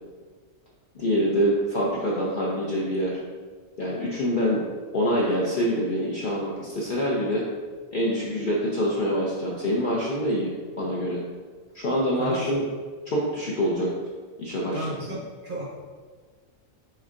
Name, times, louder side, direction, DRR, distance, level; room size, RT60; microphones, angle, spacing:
voice 1, 0.9-3.2 3.8-4.6 4.9-7.4 7.9-11.2 11.7-12.6 13.1-13.9 14.4-15.0, equal, 55° left, -5 dB, 0.5 m, -25 dB
voice 2, 12.2-12.5 14.7-15.6, right 1 dB, 50° right, -4 dB, 0.7 m, -33 dB
4.3 x 4.1 x 2.4 m, 1.5 s
omnidirectional pair, 1.4 m